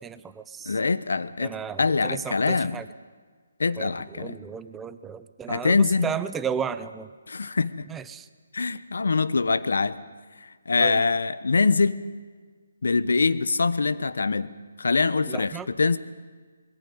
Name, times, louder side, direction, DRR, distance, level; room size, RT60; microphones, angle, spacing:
voice 1, 0.0-0.8 1.4-2.9 3.8-7.1 7.9-8.3 10.8-11.1 15.3-15.7, right 7 dB, 10° right, 13 dB, 0.7 m, -34 dB
voice 2, 0.7-2.8 3.6-4.4 5.5-6.1 7.3-7.9 8.5-10.0 10.4-12.0 12.8-14.5 14.8-16.0, left 4 dB, 75° left, 15 dB, 1.0 m, -24 dB
21.5 x 15.0 x 9.4 m, 1.5 s
hypercardioid pair, 155°, 0 cm